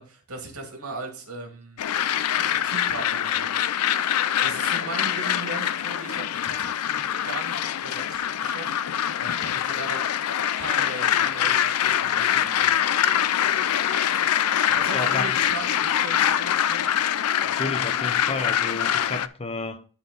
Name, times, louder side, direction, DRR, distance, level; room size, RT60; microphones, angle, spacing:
voice 1, 0.0-1.8 2.1-3.5 4.4-10.0 10.6-12.7 14.7-16.8, right 2 dB, 75° right, 2.3 m, -38 dB
sound 1, 1.8-19.3, left 10 dB, 85° left, 0.4 m, -24 dB
voice 2, 14.9-15.4 17.4-19.8, left 2 dB, 25° left, 0.6 m, -31 dB
12.5 x 4.5 x 3.9 m
head